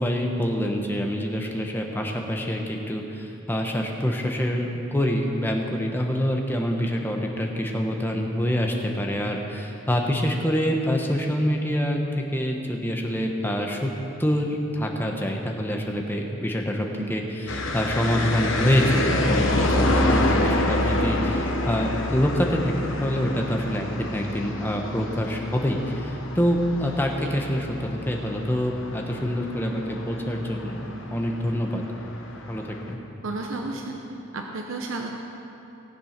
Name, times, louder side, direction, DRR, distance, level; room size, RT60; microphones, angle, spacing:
voice 1, 0.0-13.9 14.2-31.8 32.5-33.0, equal, 10° left, 1 dB, 1.0 m, -26 dB
sound 1, 17.5-32.9, left 1 dB, 65° left, 1.1 m, -27 dB
voice 2, 33.2-35.1, right 2 dB, 70° right, 2 dB, 0.9 m, -33 dB
17.5 x 7.8 x 5.9 m, 3.0 s
head